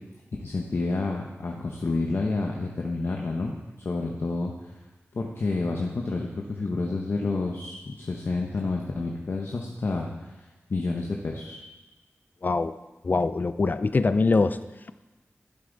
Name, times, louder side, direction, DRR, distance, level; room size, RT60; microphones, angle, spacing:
voice 1, 0.4-3.6 3.8-4.5 5.1-10.4 10.7-11.6, left 3 dB, 60° left, 0 dB, 0.9 m, -29 dB
voice 2, 12.4-12.7 13.0-14.6, left 3 dB, 40° left, 12 dB, 0.4 m, -23 dB
12.0 x 8.1 x 3.9 m, 1.1 s
wide cardioid pair, 100°, 5 cm